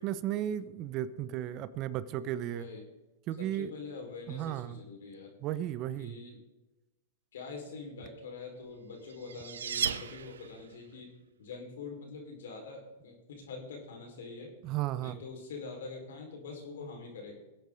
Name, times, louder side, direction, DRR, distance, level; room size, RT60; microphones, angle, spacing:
voice 1, 0.0-2.7 3.3-3.7 4.3-4.8 5.4-6.2 14.6-15.2, right 12 dB, 40° right, 15 dB, 0.7 m, -34 dB
voice 2, 2.5-2.8 3.4-5.3 6.0-6.4 7.3-11.1 11.4-14.5 15.0-17.3, left 4 dB, 75° left, 1 dB, 4.8 m, -44 dB
sound 1, 8.7-10.8, right 7 dB, 85° right, 0.8 m, -36 dB
21.0 x 8.3 x 3.9 m, 1.0 s
hypercardioid pair, 120°, 0 cm